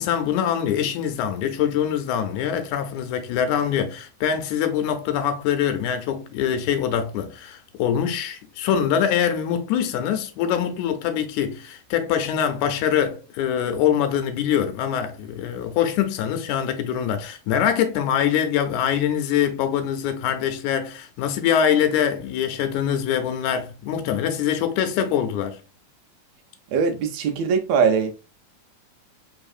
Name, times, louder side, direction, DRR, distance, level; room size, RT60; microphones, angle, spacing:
voice 1, 0.0-25.6, left 9 dB, 85° left, 2.0 m, -24 dB
voice 2, 26.7-28.1, right 6 dB, 80° right, 1.6 m, -21 dB
4.1 x 3.3 x 2.4 m
omnidirectional pair, 3.4 m